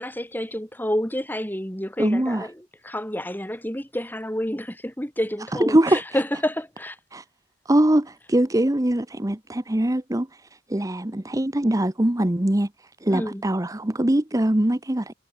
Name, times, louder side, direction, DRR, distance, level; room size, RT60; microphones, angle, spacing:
voice 1, 0.0-7.0 13.1-13.4, equal, 10° left, 5.9 m, -29 dB
voice 2, 2.0-2.5 5.7-6.0 7.1-7.2 7.7-10.3 10.7-12.7 13.0-15.1, right 1 dB, 20° right, 0.9 m, -22 dB
head